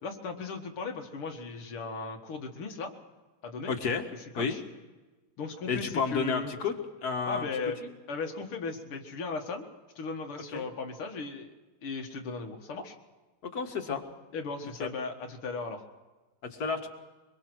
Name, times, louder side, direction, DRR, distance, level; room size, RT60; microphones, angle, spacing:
voice 1, 0.0-2.9 3.4-3.7 4.3-4.6 5.4-6.5 7.3-7.8 8.1-9.7 10.0-11.5 11.8-13.0 14.3-15.8, left 4 dB, 90° left, 3 dB, 2.7 m, -37 dB
voice 2, 3.7-4.0 4.4-4.6 5.7-6.7 7.0-7.5 7.8-7.9 10.5-10.6 13.4-14.0 14.8-14.9 16.6-16.9, left 5 dB, 45° left, 5 dB, 2.2 m, -31 dB
24.0 x 22.0 x 6.3 m, 1.2 s
omnidirectional pair, 2.3 m